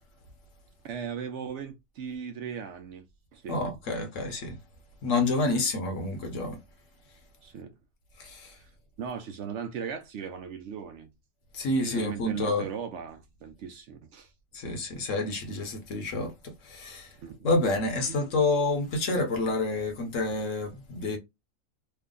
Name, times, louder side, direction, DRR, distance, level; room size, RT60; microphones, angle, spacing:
voice 1, 0.8-3.1 3.3-3.6 7.4-7.7 8.5-8.7 9.0-11.1 11.9-14.3 17.2-17.5 18.1-18.2, right 7 dB, 65° right, 0.8 m, -38 dB
voice 2, 3.5-4.6 5.0-6.6 8.2-8.5 11.5-12.7 14.5-17.1 17.4-21.2, left 2 dB, 65° left, 1.3 m, -28 dB
3.3 x 2.2 x 3.7 m
omnidirectional pair, 1.4 m